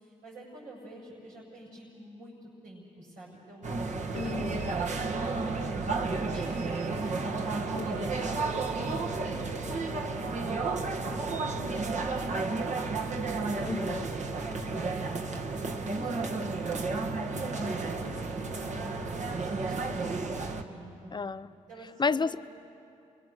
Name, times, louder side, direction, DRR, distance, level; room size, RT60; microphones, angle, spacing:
voice 1, 0.0-4.2 4.5-9.4 9.7-12.8 13.1-15.3 15.6-21.1 21.7-22.2, right 1 dB, 90° right, -5 dB, 6.4 m, -47 dB
sound 1, 3.6-20.6, right 3 dB, 60° right, 1.5 m, -32 dB
voice 2, 4.1-4.7 7.7-8.1 13.7-14.1 21.1-21.5 22.0-22.4, left 4 dB, 35° left, 13 dB, 0.7 m, -31 dB
28.5 x 22.5 x 6.6 m, 2.6 s
supercardioid pair, 55°, 14 cm